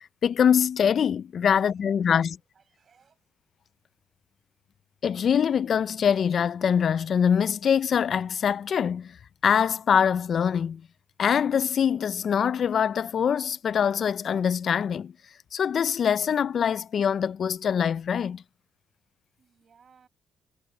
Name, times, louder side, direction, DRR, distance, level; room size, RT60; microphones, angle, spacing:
voice 1, 0.2-2.4 5.0-9.2 9.4-10.8 11.2-15.1 15.5-18.4, left 7 dB, 50° left, 0.3 m, -24 dB
voice 2, 1.4-3.3 19.4-20.1, right 6 dB, 45° right, 7.9 m, -62 dB
cardioid pair, 110°, 0 cm